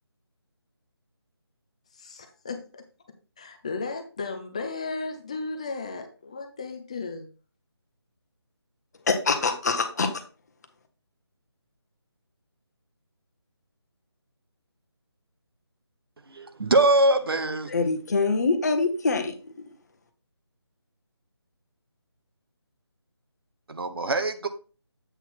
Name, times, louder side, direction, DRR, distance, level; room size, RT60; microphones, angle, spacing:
voice 1, 2.0-2.8 3.4-7.3, left 3 dB, 15° left, 0.5 m, -35 dB
voice 2, 9.1-10.1 17.7-19.5, left 4 dB, 40° left, 1.0 m, -24 dB
voice 3, 16.3-17.7 23.7-24.5, right 2 dB, 60° right, 0.9 m, -23 dB
8.0 x 4.1 x 4.4 m
figure-of-eight pair, 165°, 14 cm